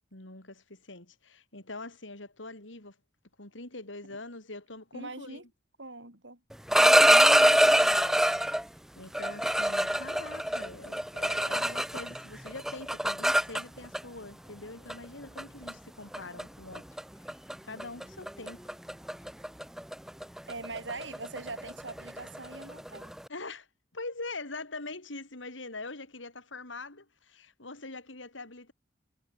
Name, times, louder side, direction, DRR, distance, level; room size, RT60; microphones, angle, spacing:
voice 1, 0.1-3.0 3.4-5.5 6.8-8.4 9.0-16.9 17.2-17.3 17.6-18.6 23.3-23.7 23.9-28.7, left 2 dB, 85° left, 4.2 m, -43 dB
voice 2, 4.9-5.4 5.8-6.4 20.5-23.1, right 3 dB, 75° right, 6.5 m, -42 dB
sound 1, 6.5-8.6 9.1-12.2 12.5-14.0 14.9-15.0 15.4-15.7 16.1-16.4 16.7-17.0 17.3-17.5 17.8-23.2, right 1 dB, ahead, 0.4 m, -24 dB
head